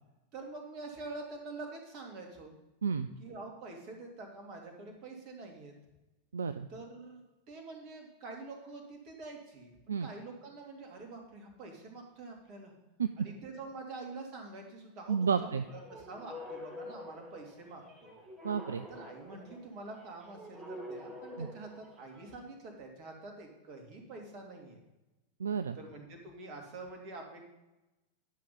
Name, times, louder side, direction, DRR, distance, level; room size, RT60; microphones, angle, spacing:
voice 1, 0.3-2.5 3.2-5.7 6.7-12.7 13.2-18.1 18.9-24.8 25.7-27.5, right 3 dB, 40° right, 2 dB, 2.3 m, -46 dB
voice 2, 6.3-6.7 9.9-10.1 13.0-13.1 15.1-15.6 18.4-18.9 21.4-21.5 25.4-25.8, right 6 dB, 70° right, 10 dB, 0.4 m, -31 dB
sound 1, 15.6-22.4, left 1 dB, 15° right, 2.8 m, -48 dB
10.5 x 6.1 x 5.3 m, 1.0 s
figure-of-eight pair, 90°, 0 cm